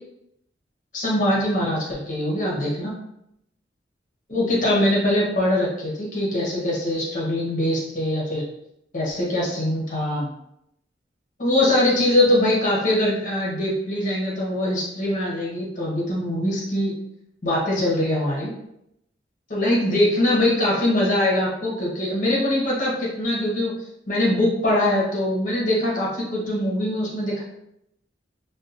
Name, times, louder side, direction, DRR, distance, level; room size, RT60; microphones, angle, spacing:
voice 1, 0.9-2.9 4.3-8.4 8.9-10.3 11.4-16.9 17.4-18.5 19.5-23.7 24.1-27.4, left 1 dB, 45° left, -5 dB, 0.9 m, -22 dB
2.8 x 2.3 x 2.5 m, 0.78 s
head